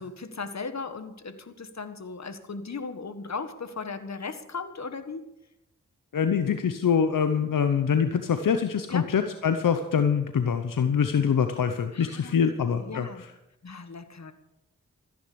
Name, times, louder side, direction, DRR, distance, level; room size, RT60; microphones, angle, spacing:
voice 1, 0.0-5.3 8.9-9.1 11.9-13.3 13.6-14.3, left 4 dB, 55° left, 10 dB, 1.7 m, -37 dB
voice 2, 6.1-13.1, left 7 dB, 80° left, 8 dB, 0.9 m, -24 dB
14.5 x 10.5 x 7.0 m, 0.88 s
cardioid pair, 45°, 32 cm